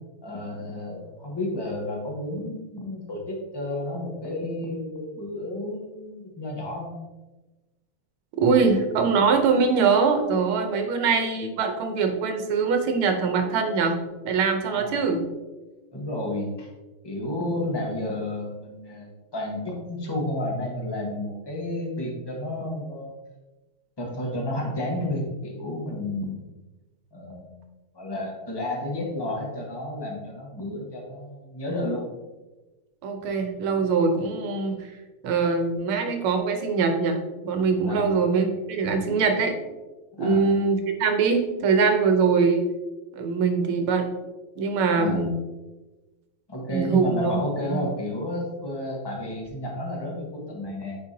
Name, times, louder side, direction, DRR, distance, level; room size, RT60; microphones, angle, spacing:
voice 1, 0.2-7.0 14.7-14.9 15.9-16.7 17.0-23.1 24.0-26.6 27.1-27.7 27.9-32.1 37.8-38.1 40.1-40.5 44.9-45.2 46.5-51.0, left 1 dB, 15° left, -2 dB, 1.0 m, -31 dB
voice 2, 8.4-14.0 14.3-15.2 33.0-34.9 35.2-37.2 37.4-39.6 40.2-42.7 43.1-44.1 44.6-45.3 46.7-47.3 47.7-47.8, right 5 dB, 80° right, 5 dB, 1.7 m, -23 dB
9.2 x 4.6 x 2.8 m, 1.1 s
omnidirectional pair, 2.3 m